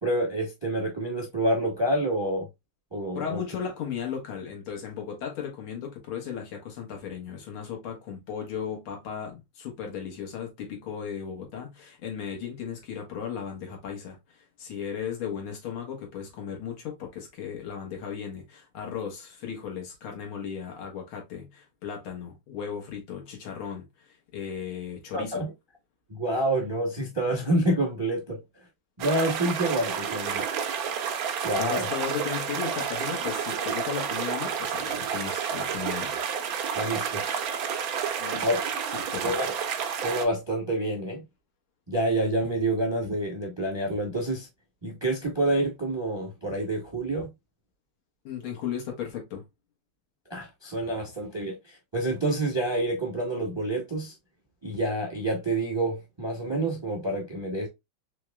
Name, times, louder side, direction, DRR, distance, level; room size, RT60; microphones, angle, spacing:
voice 1, 0.0-2.5 2.9-3.4 25.1-25.5 26.1-28.4 29.0-30.4 31.4-31.9 36.7-37.4 38.4-38.6 39.2-39.5 40.0-41.2 41.9-44.5 44.8-47.3 50.3-54.1 54.6-57.7, right 1 dB, 20° right, 0.7 m, -28 dB
voice 2, 3.2-25.5 31.6-36.2 38.2-38.5 38.9-39.4 48.2-49.4, left 7 dB, 85° left, 2.2 m, -36 dB
sound 1, 29.0-40.3, right 7 dB, 70° right, 0.8 m, -30 dB
4.6 x 3.2 x 2.3 m
omnidirectional pair, 2.3 m